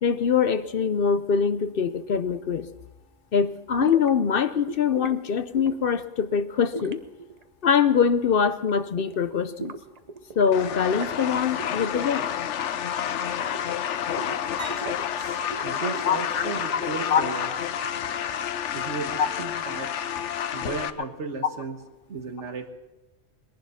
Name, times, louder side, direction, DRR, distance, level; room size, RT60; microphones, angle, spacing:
voice 1, 0.0-2.7 3.3-7.0 7.6-9.7 10.4-12.3 16.0-16.4 16.7-16.8 17.1-17.2 19.2-19.3, left 7 dB, 60° left, 13 dB, 0.8 m, -23 dB
sound 1, 3.8-4.1 4.5-5.2 5.5-5.9 6.7-8.2 8.5-8.7 9.0-10.5 10.8-11.2 11.6-12.5 12.7-13.9 14.2-15.0 15.4-17.2, right 4 dB, 40° right, 0.8 m, -38 dB
sound 2, 10.5-20.9, left 9 dB, 90° left, 1.0 m, -29 dB
voice 2, 15.2-17.5 18.7-19.9 20.5-21.8 22.1-22.7, right 4 dB, 85° right, 6 dB, 1.7 m, -35 dB
21.0 x 11.5 x 5.8 m, 1.1 s
omnidirectional pair, 1.2 m